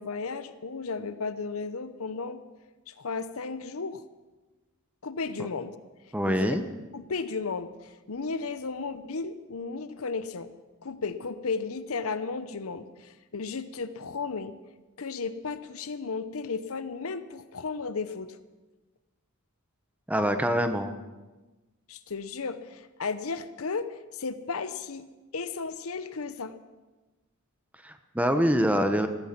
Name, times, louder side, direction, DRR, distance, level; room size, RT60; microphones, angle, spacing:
voice 1, 0.0-2.4 2.9-4.0 5.0-5.8 6.3-6.5 6.9-10.5 10.8-14.6 15.0-18.4 21.9-25.1 25.3-26.5, left 4 dB, 75° left, 12 dB, 0.8 m, -34 dB
voice 2, 6.1-6.6 20.1-21.0 27.8-29.1, equal, 5° right, 8 dB, 0.9 m, -25 dB
15.0 x 14.0 x 5.9 m, 1.2 s
head